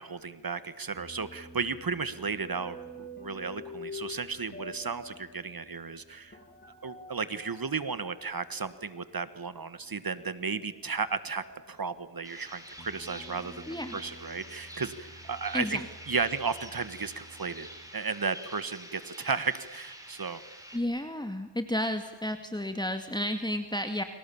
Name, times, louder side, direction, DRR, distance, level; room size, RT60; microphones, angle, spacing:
voice 1, 0.0-6.4 6.8-13.7 13.9-17.7 17.9-20.4, right 5 dB, 55° right, 13 dB, 1.7 m, -34 dB
sound 1, 0.9-9.2 9.8-17.9, left 2 dB, 25° left, 7.5 m, -49 dB
sound 2, 12.2-20.8, equal, 10° right, 6.4 m, -47 dB
voice 2, 13.7-14.0 15.5-15.8 20.7-24.0, left 1 dB, 10° left, 7 dB, 2.1 m, -32 dB
30.0 x 26.0 x 7.2 m, 1.2 s
wide cardioid pair, 75°, 42 cm